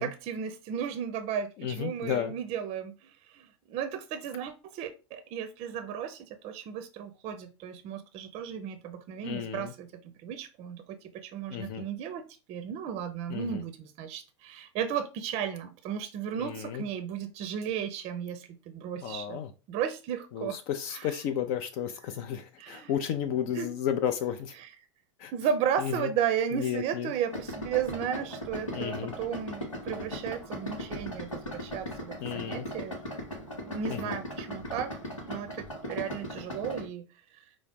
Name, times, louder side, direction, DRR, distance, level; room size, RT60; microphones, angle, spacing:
voice 1, 0.0-9.9 10.2-19.4 19.7-20.6 20.9-21.1 22.6-22.9 23.6-23.7 24.6-24.7 25.3-33.0 33.6-34.9 35.2-37.1 37.3-37.4, right 8 dB, 40° right, 0.5 m, -34 dB
voice 2, 1.6-2.4 9.2-9.7 11.5-11.8 13.3-13.6 16.4-16.8 19.0-19.5 20.3-24.5 25.2-25.3 25.8-26.1 26.5-27.1 28.7-29.1 32.2-32.7 33.9-34.2, left 9 dB, 45° left, 0.4 m, -33 dB
Idling, 27.3-36.9, left 1 dB, 90° left, 0.9 m, -38 dB
4.5 x 2.0 x 3.4 m
figure-of-eight pair, 85°, 16 cm